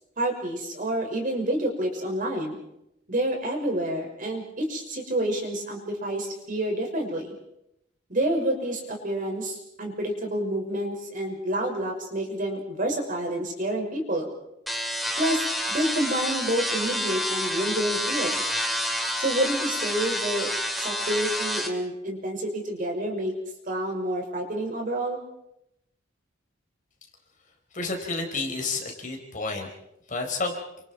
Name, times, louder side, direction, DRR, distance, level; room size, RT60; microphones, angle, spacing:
voice 1, 0.2-2.6 3.1-7.3 8.1-14.3 15.2-18.4 19.2-23.3 23.7-25.2, right 1 dB, 45° right, 2 dB, 6.0 m, -28 dB
sound 1, 14.7-21.7, equal, ahead, 2.9 m, -28 dB
voice 2, 27.7-29.7 30.1-30.6, left 3 dB, 40° left, 2 dB, 4.8 m, -30 dB
29.0 x 26.5 x 4.6 m, 0.82 s
head